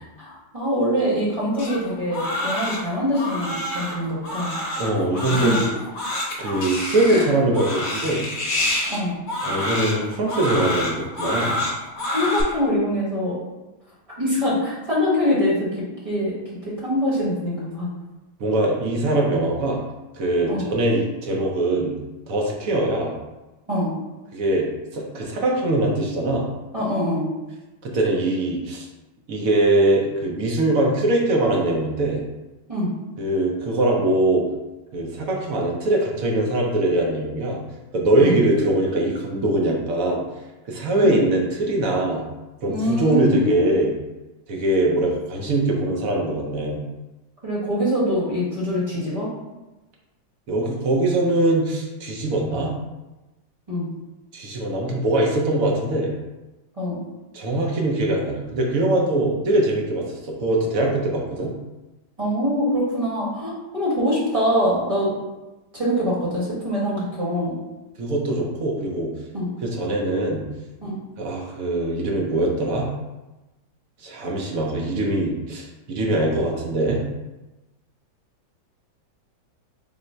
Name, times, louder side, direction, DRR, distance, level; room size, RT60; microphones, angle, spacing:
voice 1, 0.2-4.6 5.3-5.6 7.1-7.3 8.9-9.1 12.1-13.4 14.2-16.3 16.6-17.9 20.5-20.6 23.7-23.9 26.7-27.3 32.7-32.9 38.2-38.4 41.0-41.1 42.7-43.8 47.4-49.3 53.7-53.9 56.8-57.0 62.2-65.1 65.7-67.5 69.3-69.5 70.8-71.0, equal, 20° right, -7 dB, 1.1 m, -24 dB
Crying sobbing, 1.6-12.4, left 1 dB, 60° left, 1.1 m, -27 dB
voice 2, 4.8-5.7 6.4-8.2 9.4-11.6 18.4-19.8 20.1-21.9 22.3-23.1 24.3-24.7 24.9-26.5 27.8-28.8 29.3-32.2 33.2-34.4 34.9-37.6 37.9-40.2 40.7-42.2 42.6-43.9 44.5-46.8 50.5-52.7 54.3-56.1 57.3-61.5 68.0-69.1 69.6-70.4 71.2-72.9 74.0-77.0, right 1 dB, 60° right, -1 dB, 1.0 m, -22 dB
3.8 x 2.1 x 4.3 m, 1.1 s
omnidirectional pair, 1.9 m